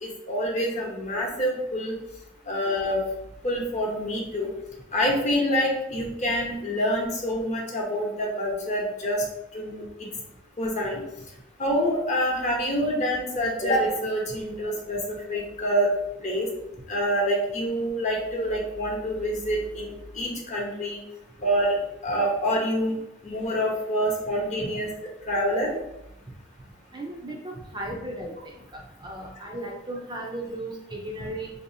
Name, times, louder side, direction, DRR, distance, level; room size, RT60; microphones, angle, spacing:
voice 1, 0.0-2.0 2.5-3.0 3.4-4.5 4.9-9.2 9.5-10.1 10.6-11.0 11.6-15.9 16.2-16.5 16.9-21.0 21.4-21.8 22.0-22.9 23.2-24.9 25.3-25.7, equal, 35° left, -1 dB, 0.8 m, -26 dB
voice 2, 26.9-28.3 28.7-31.5, right 1 dB, 20° right, -1 dB, 0.4 m, -35 dB
4.0 x 2.7 x 2.6 m, 0.85 s
head